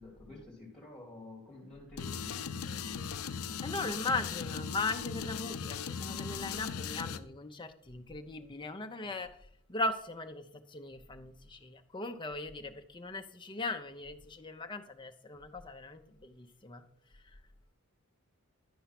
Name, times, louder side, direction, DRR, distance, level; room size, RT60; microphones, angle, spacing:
voice 1, 0.0-2.5 2.8-3.1 3.8-4.3 9.0-9.1, left 2 dB, 5° left, -3 dB, 2.9 m, -51 dB
sound 1, 2.0-7.2, left 6 dB, 70° left, 0.5 m, -38 dB
voice 2, 3.6-9.3 9.7-16.8, left 2 dB, 20° left, 6 dB, 0.6 m, -38 dB
11.0 x 4.6 x 5.8 m, 0.68 s
head